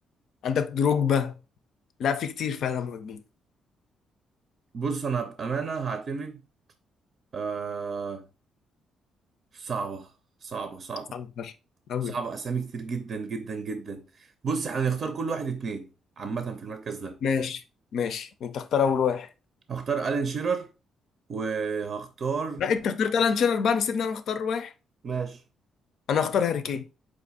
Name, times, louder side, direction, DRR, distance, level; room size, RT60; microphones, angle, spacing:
voice 1, 0.4-1.3 2.0-3.2 11.1-11.5 11.9-12.2 17.2-17.6 17.9-19.3 22.6-24.7 26.1-26.9, left 7 dB, 70° left, 0.5 m, -26 dB
voice 2, 4.7-6.4 7.3-8.3 9.5-10.1 10.4-11.2 12.0-15.9 16.2-17.2 19.7-20.7 21.3-22.6 25.0-25.4, right 5 dB, 50° right, 0.6 m, -31 dB
4.7 x 2.6 x 4.0 m
cardioid pair, 90°, 0 cm